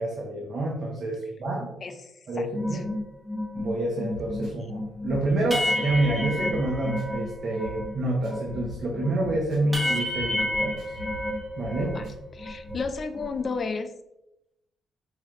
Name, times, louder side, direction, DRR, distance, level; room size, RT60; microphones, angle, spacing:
voice 1, 0.0-1.7 2.3-2.8 3.5-10.8 11.6-12.0, right 2 dB, 55° right, -2 dB, 0.9 m, -28 dB
voice 2, 1.8-2.1 2.4-2.5 2.7-2.8 11.8-12.1 12.3-13.9, left 4 dB, 45° left, 9 dB, 0.5 m, -32 dB
sound 1, 2.5-8.0 8.2-12.1 12.4-13.6, left 1 dB, 10° right, 0.7 m, -31 dB
sound 2, 3.8-12.8, left 2 dB, 80° right, 1.3 m, -44 dB
5.0 x 3.1 x 2.5 m, 0.88 s
cardioid pair, 90°, 0 cm